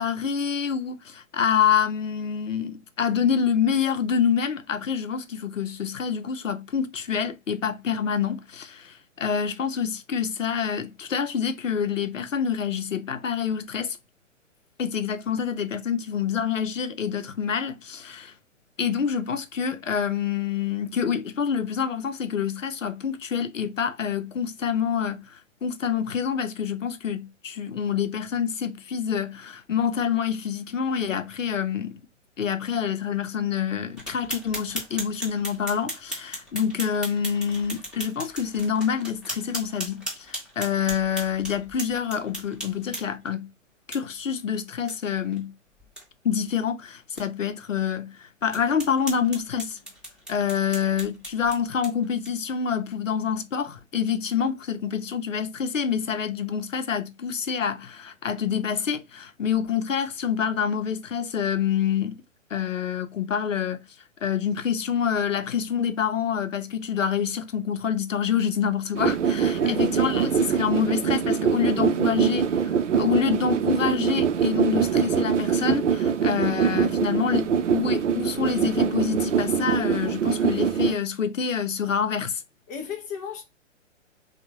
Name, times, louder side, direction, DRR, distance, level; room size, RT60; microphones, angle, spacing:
voice 1, 0.0-14.0 14.8-18.3 18.8-32.0 32.4-43.5 43.9-45.5 46.2-49.8 50.3-62.2 62.5-63.8 64.2-82.4, left 7 dB, 75° left, 0.7 m, -27 dB
sound 1, 34.0-43.3 43.9-44.0 44.4-44.5 44.9-45.0 45.3-45.4 45.8-46.0 46.5-46.6 47.2-47.3 47.8-47.9 48.5-52.5, equal, ahead, 1.0 m, -37 dB
sound 2, 68.9-80.9, right 7 dB, 65° right, 0.6 m, -23 dB
voice 2, 69.5-69.9 82.7-83.4, left 7 dB, 15° left, 0.4 m, -35 dB
3.5 x 2.3 x 2.8 m
figure-of-eight pair, 120°, 38 cm